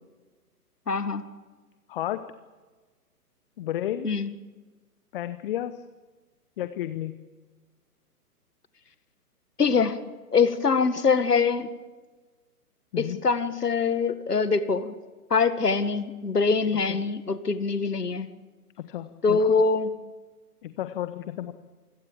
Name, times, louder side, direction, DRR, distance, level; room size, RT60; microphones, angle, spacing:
voice 1, 0.9-1.2 4.0-4.3 9.6-10.0 10.3-11.7 13.0-14.9 15.3-18.3 19.2-19.9, left 5 dB, 80° left, 11 dB, 1.9 m, -23 dB
voice 2, 1.9-2.2 3.6-4.1 5.1-5.8 6.6-7.2 12.9-13.2 16.9-17.0 18.8-19.5 20.6-21.5, left 12 dB, 35° left, 12 dB, 1.0 m, -32 dB
27.5 x 17.0 x 7.4 m, 1.3 s
figure-of-eight pair, 125°, 47 cm